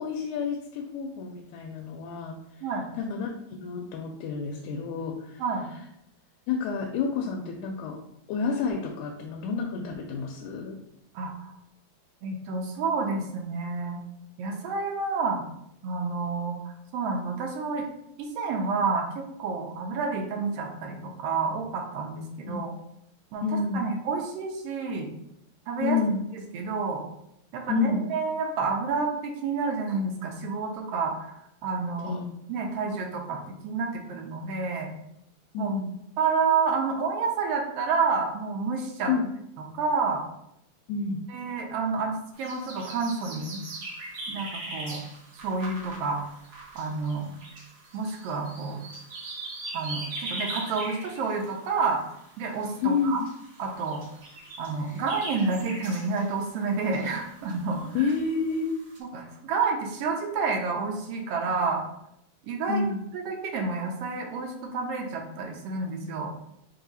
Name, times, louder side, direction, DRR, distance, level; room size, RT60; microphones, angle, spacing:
voice 1, 0.0-2.4 3.0-3.3 3.6-5.4 6.5-8.0 8.3-10.8 22.5-22.6 23.4-23.9 25.8-26.2 27.7-28.1 32.0-32.3 35.5-35.9 39.1-39.3 40.9-41.2 52.8-53.2 58.0-58.8 62.7-63.1, left 5 dB, 90° left, 1 dB, 2.0 m, -29 dB
voice 2, 11.1-11.5 12.2-14.0 14.4-15.4 15.8-17.9 18.3-22.7 23.3-23.4 23.7-25.1 25.7-26.0 26.3-27.0 27.5-32.1 32.5-34.9 35.6-35.7 36.2-39.1 39.7-40.2 41.3-43.6 44.3-45.0 45.3-46.2 46.7-47.3 47.9-48.9 49.7-52.0 52.4-53.2 53.6-54.0 54.6-58.1 59.0-61.8 62.4-62.8 63.1-66.3, right 4 dB, 75° right, 1 dB, 1.5 m, -29 dB
sound 1, 42.3-59.0, right 2 dB, 55° right, 1.0 m, -41 dB
4.8 x 2.6 x 3.9 m, 0.78 s
omnidirectional pair, 3.3 m